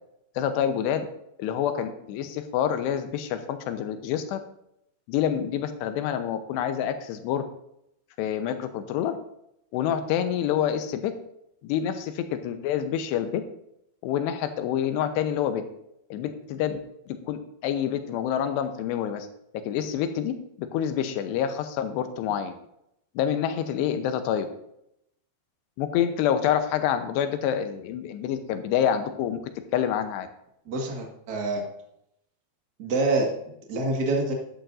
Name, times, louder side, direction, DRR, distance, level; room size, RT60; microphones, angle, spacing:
voice 1, 0.4-1.1 1.4-4.4 5.1-7.4 8.2-9.2 9.7-11.1 11.6-13.4 14.0-15.6 16.1-19.3 19.7-22.6 23.2-24.5 25.8-29.4 29.7-30.3, left 9 dB, 90° left, 8 dB, 2.9 m, -27 dB
voice 2, 30.7-31.6 32.8-34.3, right 2 dB, 75° right, 0 dB, 0.9 m, -26 dB
12.5 x 10.5 x 2.6 m, 0.78 s
omnidirectional pair, 4.9 m